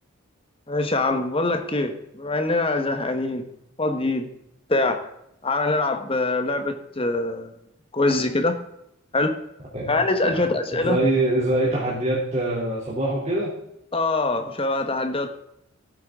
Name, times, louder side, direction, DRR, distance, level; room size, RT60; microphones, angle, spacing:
voice 1, 0.7-3.5 3.8-4.3 4.7-5.1 5.4-7.5 7.9-8.6 9.1-9.3 9.9-11.0 13.9-15.3, left 2 dB, 25° left, 7 dB, 1.2 m, -23 dB
voice 2, 10.3-13.5, right 1 dB, 30° right, -6 dB, 3.0 m, -24 dB
16.0 x 9.0 x 3.7 m, 0.77 s
head